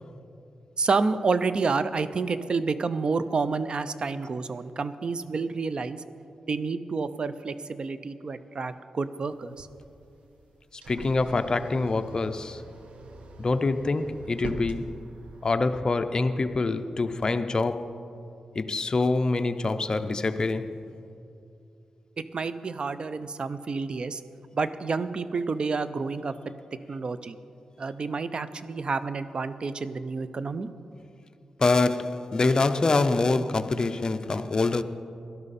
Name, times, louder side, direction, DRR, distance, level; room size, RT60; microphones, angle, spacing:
voice 1, 0.8-6.0 6.5-9.7 22.2-24.2 24.5-26.3 26.9-27.4 27.8-30.7, right 4 dB, 50° right, 0.5 m, -29 dB
sound 1, 9.3-15.6, right 2 dB, 75° right, 1.1 m, -44 dB
voice 2, 10.9-12.6 13.4-15.0 15.4-18.0 18.5-20.8 31.6-34.8, left 3 dB, 35° left, 0.6 m, -25 dB
17.5 x 12.0 x 4.2 m
cardioid pair, 80°, 2 cm